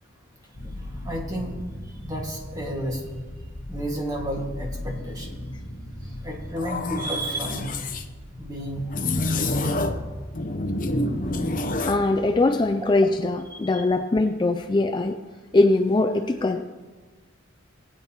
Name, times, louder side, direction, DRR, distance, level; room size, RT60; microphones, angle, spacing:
sound 1, 0.5-14.5, left 1 dB, 75° left, 1.2 m, -39 dB
voice 1, 0.6-1.5 2.0-3.0 3.7-5.3 6.2-7.7 8.4-8.8 9.3-9.7 13.5-13.6, right 1 dB, 20° right, -1 dB, 1.9 m, -32 dB
sound 2, 6.6-8.0 8.9-10.1 10.3-12.1, left 2 dB, 40° left, 0.7 m, -27 dB
voice 2, 11.9-15.2 15.5-16.7, left 2 dB, 20° left, 7 dB, 0.3 m, -21 dB
19.5 x 9.0 x 3.0 m, 1.3 s
head